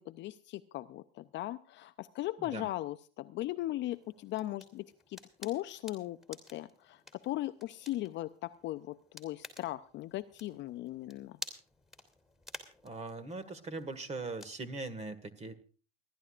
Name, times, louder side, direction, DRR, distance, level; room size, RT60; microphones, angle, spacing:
voice 1, 0.0-11.4, left 15 dB, 40° left, 11 dB, 0.5 m, -38 dB
voice 2, 2.4-2.7 12.8-15.5, right 3 dB, 20° right, 13 dB, 1.8 m, -40 dB
sound 1, 3.9-14.6, left 2 dB, ahead, 3.0 m, -52 dB
28.5 x 11.5 x 2.5 m, 0.36 s
supercardioid pair, 110°, 29 cm